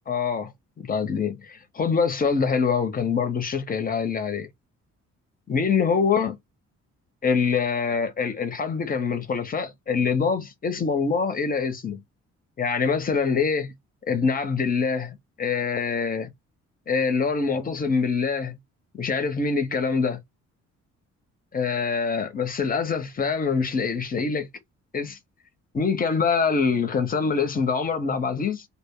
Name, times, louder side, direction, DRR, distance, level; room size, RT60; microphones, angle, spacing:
voice 1, 0.1-0.5 0.8-4.5 5.5-6.4 7.2-12.0 12.6-13.7 14.1-16.3 16.9-18.6 18.9-20.2 21.5-24.5 24.9-25.2 25.7-28.6, left 5 dB, 30° left, 0.7 m, -25 dB
2.1 x 2.1 x 3.5 m
cardioid pair, 90°, 30 cm